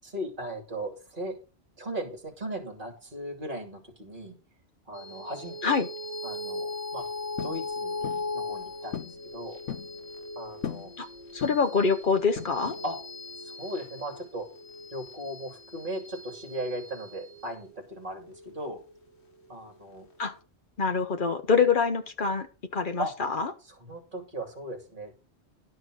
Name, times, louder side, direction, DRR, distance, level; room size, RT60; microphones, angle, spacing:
voice 1, 0.0-1.4 1.8-4.4 4.8-5.7 6.2-7.1 7.4-9.6 10.4-10.9 12.8-13.0 13.4-14.5 14.9-18.8 19.5-20.1 23.0-23.1 23.6-25.1, right 1 dB, 45° right, 4 dB, 3.0 m, -37 dB
sound 1, 4.9-19.7, left 2 dB, 60° left, 1.7 m, -39 dB
sound 2, 7.4-7.6 8.0-8.3 8.9-9.2 9.5-9.9 10.6-10.9 11.4-11.8 12.4-12.8, left 8 dB, 80° left, 1.2 m, -37 dB
voice 2, 11.3-12.7 20.2-20.3 20.8-22.5 22.7-23.0, left 5 dB, 45° left, 9 dB, 1.2 m, -25 dB
11.5 x 5.4 x 6.2 m, 0.34 s
omnidirectional pair, 1.2 m